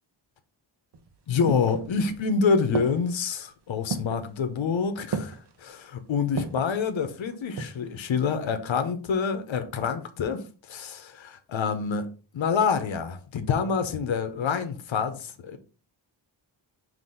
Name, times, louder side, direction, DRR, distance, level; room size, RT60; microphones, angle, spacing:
sound 1, 0.9-2.3 2.7-3.3 3.9-4.3 5.1-5.6 6.4-6.8 7.3-7.9 8.2-8.3, right 4 dB, 60° right, 0.9 m, -33 dB
voice 1, 1.3-12.1 12.3-15.6, left 5 dB, 90° left, 1.0 m, -27 dB
6.0 x 2.9 x 5.4 m
wide cardioid pair, 135°, 45 cm